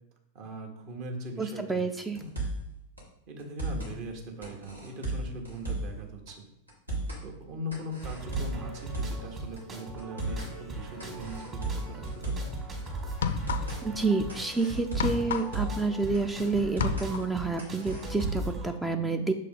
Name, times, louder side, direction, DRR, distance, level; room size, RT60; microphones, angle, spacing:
voice 1, 0.3-2.3 3.3-6.5 7.2-12.5, equal, 45° right, 2 dB, 1.3 m, -40 dB
voice 2, 1.4-2.2 13.8-19.3, right 3 dB, 10° right, 7 dB, 0.4 m, -29 dB
sound 1, 2.2-2.7 3.0-3.1 3.4-3.9 4.4-6.0 6.3-6.4 6.7-7.2 7.7-9.3 9.6-9.7 10.0-10.5 11.0-12.6 12.9-13.0 13.3-13.8 14.3-15.9 16.1-16.2 16.6-17.1 17.6-18.6, right 2 dB, 85° right, 2.0 m, -34 dB
sound 2, 8.0-18.7, right 3 dB, 25° right, 1.7 m, -39 dB
sound 3, 12.3-12.5 13.1-14.0 14.3-16.4 16.6-17.4, left 8 dB, 65° left, 0.4 m, -32 dB
6.5 x 4.1 x 3.8 m, 0.79 s
figure-of-eight pair, 90°, 0 cm